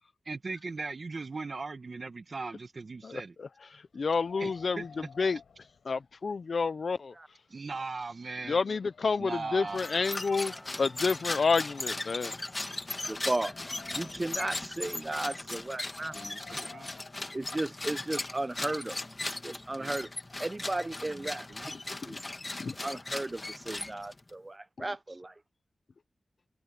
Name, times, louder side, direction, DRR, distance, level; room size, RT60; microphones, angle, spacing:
voice 1, 0.3-3.4 4.4-4.9 7.5-8.6 9.2-9.9 16.1-16.9 19.8-20.0 21.1-21.7 23.7-23.8, right 3 dB, 55° right, 1.6 m, -39 dB
voice 2, 3.0-4.9 5.2-5.4 5.9-7.4 8.5-10.5 10.8-12.4 22.1-22.2 22.6-22.7, left 4 dB, 65° left, 0.6 m, -29 dB
Wind, 3.9-6.5 6.9-7.0 7.7-7.8 8.3-9.9 10.7-12.3 12.8-14.4 15.7-17.8, left 6 dB, 85° left, 5.3 m, -55 dB
Percussion, 9.6-13.9, equal, ahead, 5.5 m, -54 dB
sound 1, 9.7-24.3, left 2 dB, 30° left, 1.9 m, -38 dB
voice 3, 13.1-13.6 13.9-16.1 16.5-16.6 17.3-19.0 19.3-20.1 20.4-21.7 22.1-22.2 22.8-25.3, right 2 dB, 30° right, 0.9 m, -35 dB
cardioid pair, 50°, 0 cm